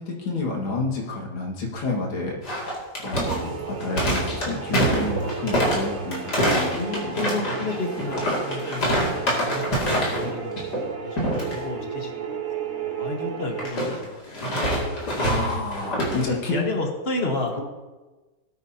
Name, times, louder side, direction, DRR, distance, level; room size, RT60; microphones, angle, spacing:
voice 1, 0.0-2.4 3.0-7.1 15.1-16.6, left 3 dB, 85° left, -2 dB, 2.7 m, -29 dB
sound 1, 2.4-10.3 10.6-10.9 11.2-11.5 13.6-16.2, equal, 55° left, 3.1 m, -25 dB
sound 2, 3.2-13.7, right 7 dB, 80° right, 1.9 m, -34 dB
voice 2, 6.7-9.0 9.4-14.2 16.3-17.5, left 3 dB, 35° left, 2 dB, 1.5 m, -32 dB
18.0 x 9.0 x 2.9 m, 1.2 s
omnidirectional pair, 2.1 m